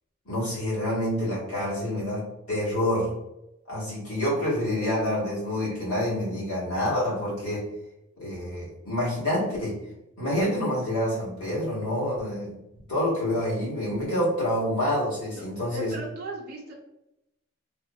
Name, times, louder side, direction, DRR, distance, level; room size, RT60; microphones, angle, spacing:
voice 1, 0.2-3.1 3.7-7.7 8.2-9.8 10.2-12.5 12.9-15.9, left 1 dB, 85° left, -7 dB, 1.4 m, -27 dB
voice 2, 15.7-16.7, right 1 dB, 45° right, -2 dB, 0.4 m, -36 dB
3.4 x 2.0 x 2.3 m, 0.89 s
head